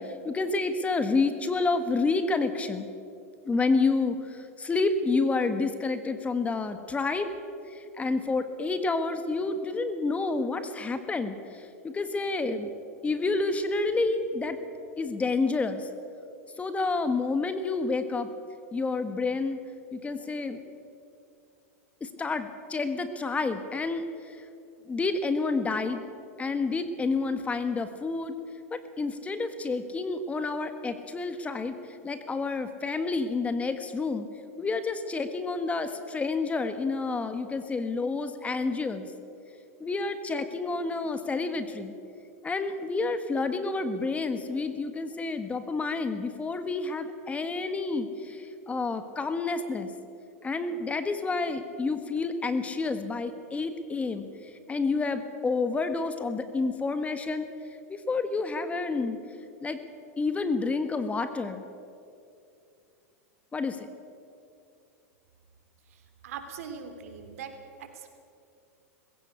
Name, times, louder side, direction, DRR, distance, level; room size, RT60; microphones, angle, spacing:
voice 1, 0.0-2.9 3.4-7.3 7.7-12.7 13.0-14.6 15.0-15.9 16.6-18.3 18.7-19.6 19.9-20.6 22.0-24.4 24.9-26.0 26.4-28.3 28.7-34.3 34.6-39.1 39.8-41.9 42.4-49.9 50.4-54.3 54.7-57.5 57.9-59.2 59.6-59.8 60.2-61.6 63.5-63.9, left 3 dB, 15° left, 9 dB, 1.5 m, -29 dB
voice 2, 65.9-67.5 67.8-68.1, right 7 dB, 70° right, 6 dB, 3.2 m, -41 dB
20.0 x 16.5 x 8.2 m, 2.5 s
hypercardioid pair, 110°, 8 cm